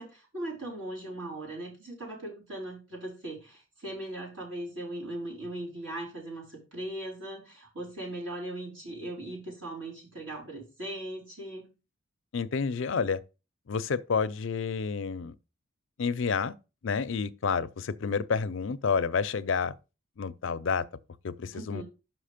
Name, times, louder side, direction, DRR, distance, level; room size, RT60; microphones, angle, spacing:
voice 1, 0.0-11.7 21.5-21.8, right 1 dB, 65° right, 4.0 m, -39 dB
voice 2, 12.3-13.2 13.7-15.3 16.0-16.6 16.8-19.7 20.2-20.9 21.2-21.8, left 5 dB, 65° left, 0.5 m, -29 dB
6.1 x 5.0 x 5.0 m
head